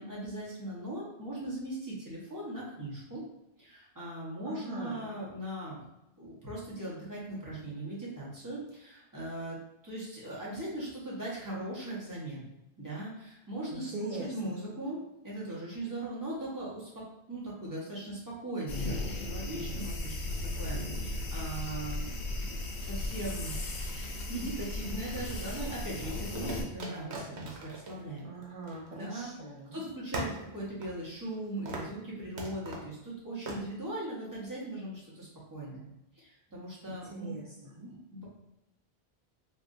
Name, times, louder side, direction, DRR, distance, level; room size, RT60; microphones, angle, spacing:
voice 1, 0.0-3.2 3.6-5.8 6.2-9.6 9.8-12.5 12.8-20.2 20.6-23.6 24.3-28.3 28.7-29.3 29.7-35.9 36.1-37.3 37.9-38.2, right 1 dB, 20° right, -7 dB, 1.0 m, -39 dB
voice 2, 4.5-5.1 13.7-14.5 28.2-29.8 36.9-37.0 37.2-37.9, right 2 dB, 45° right, -4 dB, 0.5 m, -41 dB
sound 1, 18.7-26.6, left 2 dB, 90° left, 0.9 m, -36 dB
sound 2, 24.3-25.2 26.4-29.3 29.6-29.7 30.1-31.4 31.7-32.0 32.4-32.9 33.5-33.6, right 2 dB, 90° right, 0.9 m, -41 dB
3.3 x 2.5 x 2.5 m, 0.91 s
omnidirectional pair, 1.1 m